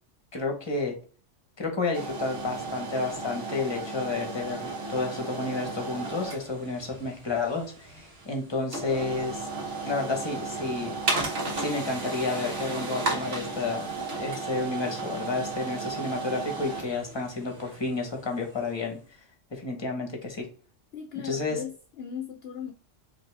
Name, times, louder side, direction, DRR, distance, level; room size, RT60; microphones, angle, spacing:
voice 1, 0.3-0.9 1.6-9.5 9.8-11.0 11.6-13.9 14.1-19.0 19.5-20.5 21.2-21.6, left 3 dB, 25° left, 1.0 m, -31 dB
sound 1, 1.9-18.8, right 3 dB, 55° right, 1.3 m, -34 dB
voice 2, 20.9-22.7, left 8 dB, 60° left, 0.8 m, -37 dB
5.0 x 2.7 x 3.3 m
omnidirectional pair, 1.3 m